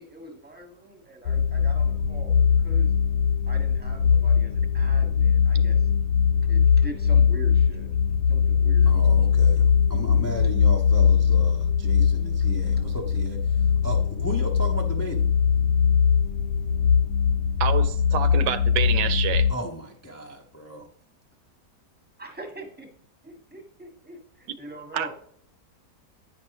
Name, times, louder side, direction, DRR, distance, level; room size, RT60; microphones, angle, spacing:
voice 1, 0.0-2.9 3.5-5.8 6.5-7.9 8.3-8.9 22.2-22.9 23.2-25.1, right 1 dB, 5° right, 1.2 m, -42 dB
sound 1, 1.3-19.5, left 6 dB, 70° left, 1.0 m, -21 dB
voice 2, 8.9-13.6 13.8-15.3 19.5-20.9, right 1 dB, 25° left, 0.3 m, -35 dB
voice 3, 17.6-19.5 24.9-25.1, right 9 dB, 85° right, 1.3 m, -27 dB
9.3 x 5.2 x 3.0 m
omnidirectional pair, 1.9 m